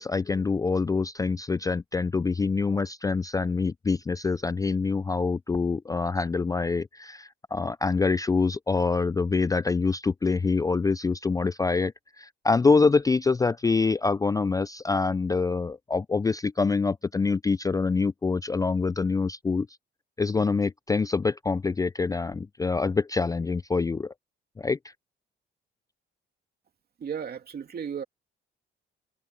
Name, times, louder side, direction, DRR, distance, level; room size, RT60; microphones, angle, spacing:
voice 1, 0.0-19.7 20.2-24.1 24.6-24.8, left 4 dB, 20° left, 0.3 m, -25 dB
voice 2, 27.0-28.0, right 7 dB, 50° right, 2.9 m, -34 dB
cardioid pair, 90°, 20 cm